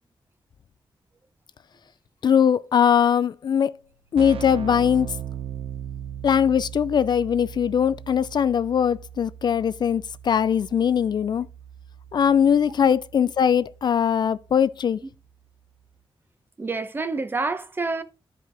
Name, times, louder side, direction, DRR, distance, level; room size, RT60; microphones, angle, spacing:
voice 1, 2.2-3.7 4.1-5.1 6.2-11.5 12.1-15.0, left 8 dB, 50° left, 0.3 m, -21 dB
Keyboard (musical), 3.6-3.7 3.8-14.5, right 9 dB, 85° right, 0.8 m, -39 dB
voice 2, 16.6-18.0, right 3 dB, 25° right, 0.8 m, -28 dB
12.5 x 4.8 x 3.7 m
wide cardioid pair, 170°, 9 cm